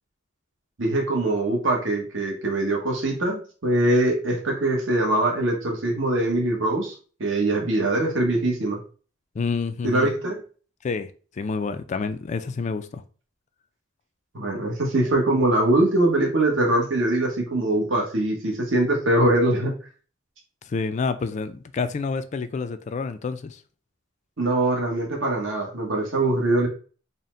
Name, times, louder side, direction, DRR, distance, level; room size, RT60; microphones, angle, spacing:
voice 1, 0.8-6.9 7.2-8.8 9.8-10.4 14.3-19.7 24.4-26.7, right 1 dB, 70° right, 1.1 m, -22 dB
voice 2, 9.4-10.1 10.8-13.0 20.7-23.6, left 4 dB, 35° left, 0.3 m, -28 dB
4.1 x 2.1 x 3.7 m
head